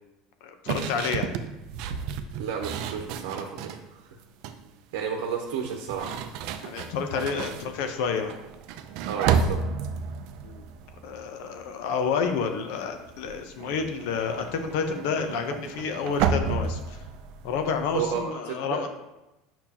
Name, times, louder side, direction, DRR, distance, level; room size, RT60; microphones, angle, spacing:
voice 1, 0.4-1.3 6.6-8.3 10.4-10.6 11.0-17.0 17.4-18.9, left 5 dB, 75° left, 6 dB, 0.7 m, -29 dB
sound 1, 0.7-3.8 4.2-4.7 5.6-11.8 12.1-12.5 12.7-18.2, right 6 dB, 65° right, 0.5 m, -32 dB
voice 2, 2.4-4.1 4.9-6.2 9.1-9.6 17.9-18.8, right 7 dB, 85° right, 1 dB, 0.8 m, -32 dB
6.9 x 5.7 x 2.9 m, 0.97 s
supercardioid pair, 120°, 0 cm